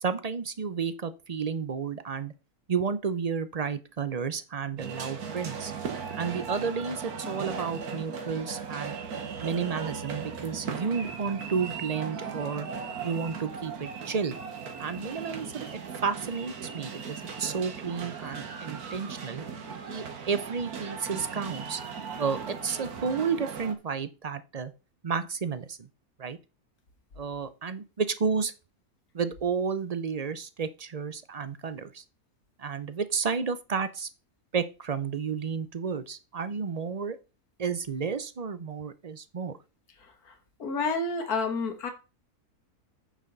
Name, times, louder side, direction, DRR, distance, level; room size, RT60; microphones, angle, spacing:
voice 1, 0.0-2.3 2.7-5.7 6.2-9.0 9.4-12.7 13.0-14.4 14.8-15.7 16.0-19.4 19.9-21.8 22.2-24.7 25.0-25.8 26.2-26.4 27.2-28.5 29.1-32.0 32.6-34.1 34.5-37.2 37.6-39.6, right 5 dB, 50° right, 0.4 m, -31 dB
sound 1, 4.8-23.7, right 6 dB, 80° right, 1.8 m, -38 dB
voice 2, 40.6-41.9, left 3 dB, 75° left, 2.0 m, -29 dB
9.1 x 6.7 x 4.0 m
omnidirectional pair, 1.6 m